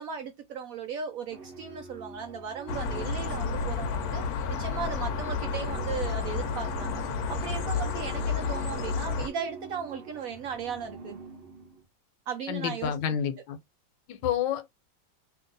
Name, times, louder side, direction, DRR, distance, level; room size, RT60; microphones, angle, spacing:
voice 1, 0.0-4.2 4.6-7.0 7.3-11.2 12.3-12.9, right 7 dB, 70° right, 0.8 m, -36 dB
sound 1, 1.3-11.8, right 3 dB, 45° right, 0.8 m, -47 dB
sound 2, 2.7-9.3, left 5 dB, 70° left, 1.0 m, -31 dB
voice 2, 12.5-13.6 14.1-14.7, left 9 dB, 85° left, 1.4 m, -29 dB
2.8 x 2.7 x 3.9 m
omnidirectional pair, 2.0 m